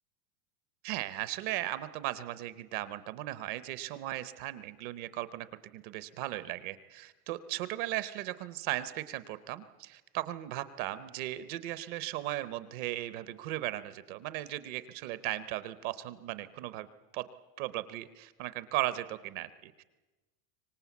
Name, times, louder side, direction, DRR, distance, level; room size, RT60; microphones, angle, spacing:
voice 1, 0.8-5.5 5.7-16.9 17.1-17.3 17.6-19.8, right 15 dB, 35° right, 15 dB, 0.7 m, -37 dB
24.5 x 18.5 x 8.3 m, 1.2 s
supercardioid pair, 175°, 45 cm